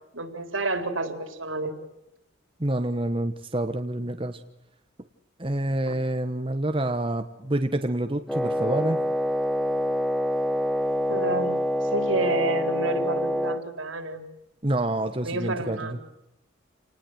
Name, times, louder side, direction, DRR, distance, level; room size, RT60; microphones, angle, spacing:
voice 1, 0.1-1.7 5.8-6.0 11.1-11.6 11.9-14.2 15.2-15.9, right 2 dB, 70° right, 7 dB, 4.0 m, -29 dB
voice 2, 2.6-4.4 5.4-9.0 14.6-16.0, right 1 dB, 25° right, 7 dB, 1.2 m, -27 dB
Wind instrument woodwind instrument, 8.3-13.6, equal, ahead, 0.8 m, -26 dB
28.5 x 19.5 x 8.0 m, 0.89 s
head